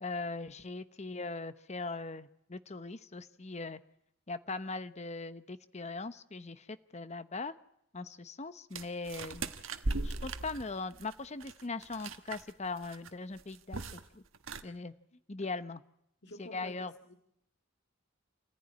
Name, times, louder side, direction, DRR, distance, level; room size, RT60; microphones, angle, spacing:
voice 1, 0.0-3.8 4.3-7.5 7.9-9.5 10.0-14.2 14.6-14.9 15.3-15.8 16.4-16.9, left 3 dB, 35° left, 12 dB, 0.9 m, -40 dB
sound 1, 8.7-12.5 12.8-13.1 13.4-14.1 14.3-14.6, right 2 dB, 85° right, 1.3 m, -38 dB
voice 2, 15.1-15.5 16.2-17.2, left 1 dB, 60° left, 3 dB, 2.0 m, -51 dB
27.5 x 15.0 x 9.7 m, 0.78 s
head